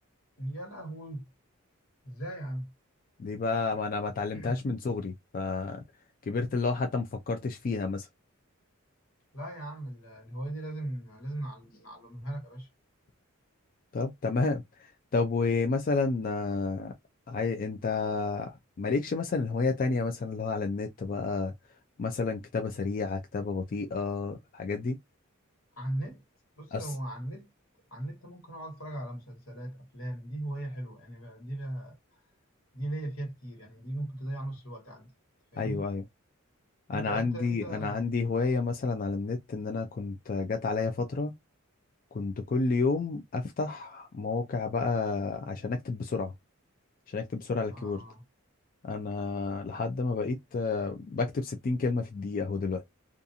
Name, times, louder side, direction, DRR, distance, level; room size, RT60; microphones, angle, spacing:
voice 1, 0.4-1.3 2.0-2.7 4.3-4.6 9.3-12.7 25.8-26.2 26.6-27.5 27.9-32.0 32.7-35.1 35.5-35.8 36.9-38.0 47.7-48.2, right 1 dB, 80° left, 1.4 m, -38 dB
voice 2, 3.2-5.8 6.3-8.1 13.9-16.9 17.3-21.5 22.0-25.0 26.7-26.9 35.6-36.0 36.9-41.3 42.1-46.3 47.1-48.0 48.8-52.9, left 4 dB, 40° left, 0.4 m, -30 dB
2.5 x 2.4 x 2.6 m
head